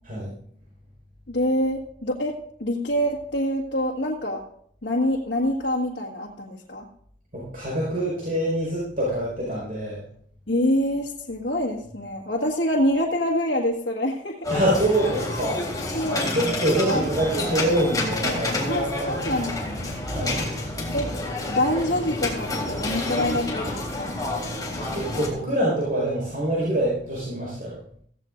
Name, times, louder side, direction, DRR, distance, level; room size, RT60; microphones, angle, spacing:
voice 1, 1.3-2.3 2.6-4.4 4.8-6.8 10.5-14.5 15.9-16.3 16.9-17.1 18.7-19.9 20.9-21.1 21.5-24.1, left 1 dB, 80° left, -4 dB, 1.8 m, -26 dB
voice 2, 7.3-10.0 14.5-15.6 16.3-19.3 20.0-20.4 24.9-27.8, right 1 dB, 50° right, -5 dB, 5.1 m, -25 dB
sound 1, 14.4-25.3, left 2 dB, 20° left, 3.5 m, -29 dB
sound 2, 17.1-25.1, equal, 10° right, 6.6 m, -45 dB
16.0 x 16.0 x 2.6 m, 0.64 s
head